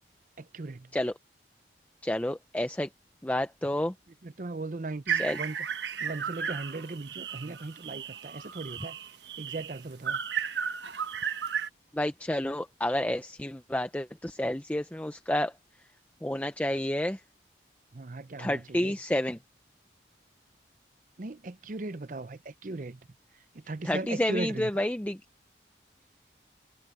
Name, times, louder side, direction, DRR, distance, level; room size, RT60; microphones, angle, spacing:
voice 1, 0.4-0.9 4.2-5.6 6.0-9.0 9.4-10.2 17.9-19.0 21.2-23.0 23.5-24.8, right 2 dB, 45° right, 0.6 m, -38 dB
voice 2, 2.0-2.9 3.2-3.9 5.1-5.4 11.9-15.5 16.2-17.2 18.4-19.4 23.8-25.2, left 1 dB, 10° left, 0.5 m, -30 dB
sound 1, 5.1-11.7, right 7 dB, 75° right, 1.1 m, -34 dB
head